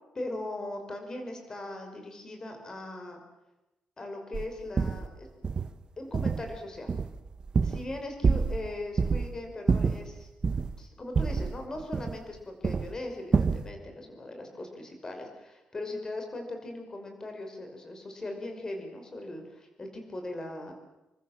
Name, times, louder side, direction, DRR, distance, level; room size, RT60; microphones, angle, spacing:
voice 1, 0.1-3.2 4.0-5.3 6.0-6.9 7.6-10.3 10.8-20.7, left 2 dB, 20° left, 4 dB, 5.6 m, -39 dB
sound 1, 4.3-4.5 4.8-5.1 5.4-5.7 6.1-6.6 6.9-7.9 8.2-8.7 9.0-9.3 9.7-10.8 11.2-12.4 12.6-12.9 13.3-13.7, right 5 dB, 30° right, 1.2 m, -27 dB
28.5 x 23.5 x 7.5 m, 0.99 s
wide cardioid pair, 160°, 3 cm